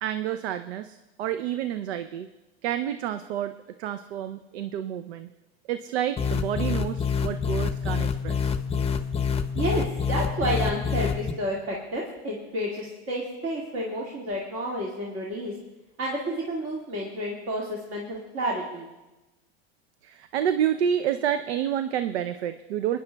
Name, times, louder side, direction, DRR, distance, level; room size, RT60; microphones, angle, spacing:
voice 1, 0.0-2.3 2.6-3.5 3.8-5.3 5.7-8.5 20.0-23.0, right 10 dB, 85° right, 10 dB, 0.5 m, -29 dB
sound 1, 6.2-11.3, left 6 dB, 20° left, 0.7 m, -27 dB
voice 2, 9.5-15.5 16.0-18.9, equal, 40° right, -3 dB, 1.9 m, -30 dB
26.5 x 10.0 x 2.2 m, 1.1 s
hypercardioid pair, 100°, 31 cm